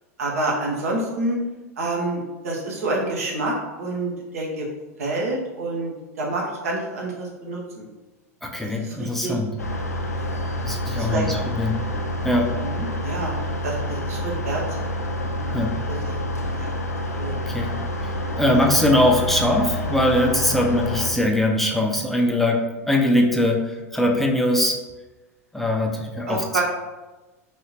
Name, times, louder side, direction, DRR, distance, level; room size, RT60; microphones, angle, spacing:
voice 1, 0.2-1.4 1.8-4.7 5.0-7.8 8.8-9.4 10.9-11.4 12.6-13.4 13.6-14.8 16.6-16.7 17.2-17.4 26.3-26.6, right 2 dB, 70° right, -2 dB, 0.8 m, -28 dB
voice 2, 8.4-9.6 10.6-11.8 12.2-12.5 15.5-15.8 17.5-24.8 25.5-26.4, left 1 dB, 5° left, 0 dB, 0.5 m, -21 dB
sound 1, 9.6-21.1, equal, 90° left, 0.4 m, -28 dB
3.3 x 2.7 x 2.9 m, 1.1 s
figure-of-eight pair, 90°, 8 cm